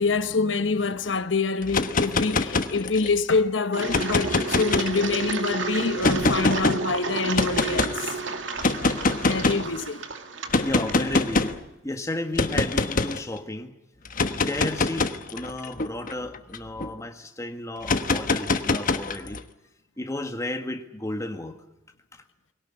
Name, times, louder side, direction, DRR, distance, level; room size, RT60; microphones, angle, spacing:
voice 1, 0.0-8.2 9.2-10.0, left 4 dB, 80° left, 1.0 m, -26 dB
sound 1, 1.6-3.2 3.8-5.3 6.0-6.8 7.3-7.9 8.6-9.7 10.5-11.6 12.4-13.2 14.1-16.9 17.8-19.4, left 3 dB, 45° left, 1.2 m, -24 dB
Engine, 3.7-11.5, right 4 dB, 85° right, 2.3 m, -31 dB
voice 2, 10.6-11.6 11.8-13.7 14.3-19.4 20.0-21.6, left 1 dB, 15° left, 1.7 m, -33 dB
22.0 x 18.0 x 9.8 m
head